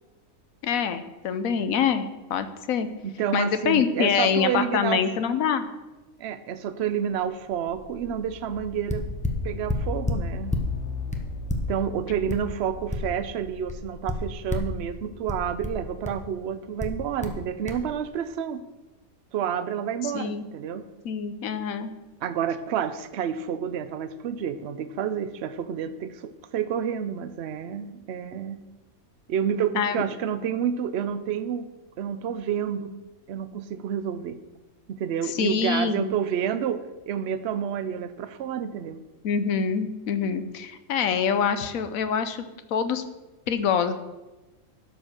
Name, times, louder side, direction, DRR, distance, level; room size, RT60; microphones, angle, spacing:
voice 1, 0.6-2.9 3.3-5.7 20.1-20.5 21.0-21.9 29.8-30.0 35.2-36.1 39.2-42.4 42.7-43.0 43.5-43.9, left 7 dB, 80° left, 10 dB, 1.2 m, -25 dB
voice 2, 3.0-5.0 6.2-9.0 9.4-10.5 11.7-18.6 19.3-20.8 22.2-28.6 29.3-31.7 32.0-32.9 33.3-34.4 34.9-39.0, right 8 dB, 60° right, 12 dB, 0.8 m, -29 dB
sound 1, 6.9-14.9, left 4 dB, 60° left, 1.0 m, -39 dB
sound 2, 8.6-8.7 8.9-10.7 11.1-13.4 13.7-14.8 15.3-16.3 16.8-17.4 17.7-17.8, left 2 dB, 5° left, 0.7 m, -30 dB
12.0 x 5.2 x 6.3 m, 1.1 s
omnidirectional pair, 1.4 m